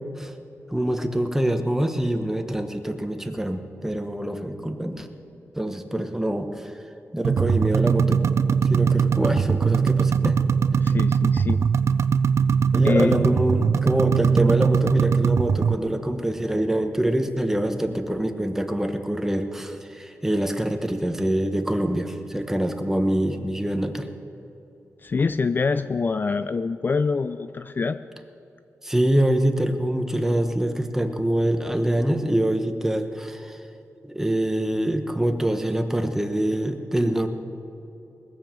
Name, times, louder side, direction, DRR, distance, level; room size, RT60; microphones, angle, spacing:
voice 1, 0.7-5.1 5.5-6.7 7.1-8.2 8.7-10.4 12.7-24.1 28.8-33.6 34.0-37.3, right 1 dB, 10° right, 6 dB, 1.1 m, -25 dB
sound 1, 7.2-15.7, right 6 dB, 65° right, 0.4 m, -21 dB
voice 2, 10.8-11.6 12.8-13.1 25.0-28.0, left 4 dB, 40° left, 11 dB, 0.4 m, -25 dB
20.0 x 7.2 x 7.5 m, 2.8 s
wide cardioid pair, 95°, 5 cm